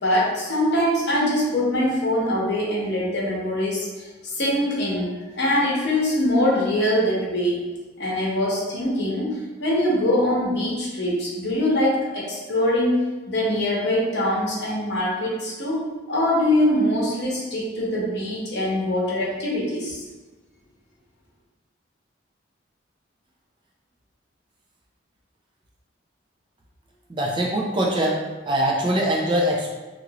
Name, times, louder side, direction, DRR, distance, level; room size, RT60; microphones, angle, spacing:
voice 1, 0.0-7.6 8.0-20.0, left 1 dB, 60° left, -5 dB, 0.9 m, -23 dB
voice 2, 27.1-29.7, right 1 dB, 25° right, -2 dB, 0.4 m, -23 dB
2.9 x 2.5 x 2.8 m, 1.2 s
head